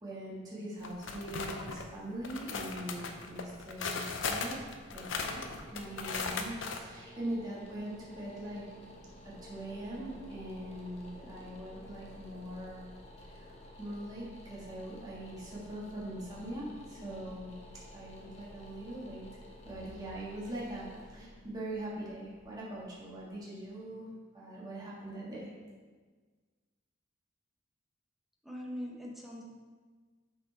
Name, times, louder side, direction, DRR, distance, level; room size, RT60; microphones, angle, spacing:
voice 1, 0.0-4.7 4.9-8.6 9.2-12.8 13.2-13.5 13.8-17.5 17.9-19.3 19.6-25.5, right 1 dB, 20° right, -7 dB, 1.6 m, -42 dB
sound 1, 0.8-1.9 2.2-6.8, left 4 dB, 80° left, 0.6 m, -37 dB
sound 2, 4.8-23.4, left 1 dB, 35° left, 1.0 m, -52 dB
voice 2, 28.4-29.4, equal, ahead, -2 dB, 0.9 m, -41 dB
6.8 x 4.5 x 4.5 m, 1.5 s
head